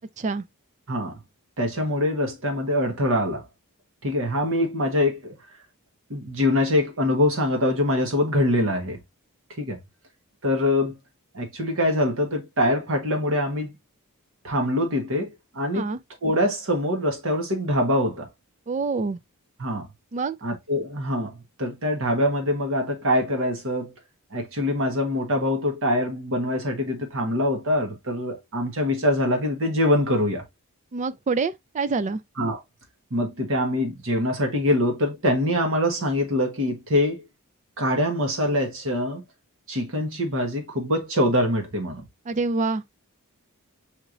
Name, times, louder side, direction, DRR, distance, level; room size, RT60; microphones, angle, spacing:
voice 1, 1.6-3.4 4.0-5.3 6.1-9.0 9.6-9.8 10.4-10.9 11.3-13.7 14.4-15.9 16.2-18.3 19.6-19.9 20.4-21.3 21.6-23.9 24.3-30.4 32.4-32.6 33.1-37.2 37.8-39.2 39.7-42.0, left 1 dB, 60° right, 1.3 m, -24 dB
voice 2, 18.7-19.2 20.1-20.4 30.9-32.2 42.3-42.8, right 4 dB, 35° right, 0.4 m, -26 dB
6.4 x 3.1 x 2.5 m
head